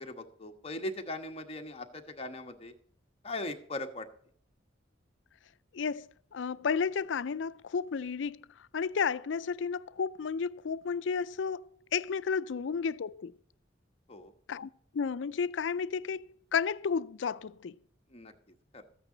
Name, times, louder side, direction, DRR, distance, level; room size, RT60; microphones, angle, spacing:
voice 1, 0.0-2.7 3.2-4.1 14.1-14.3 18.1-18.3 18.7-18.8, left 1 dB, 35° left, 1.2 m, -39 dB
voice 2, 5.7-8.4 8.7-13.3 14.5-17.8, left 6 dB, 75° left, 0.4 m, -32 dB
14.0 x 9.1 x 3.9 m
head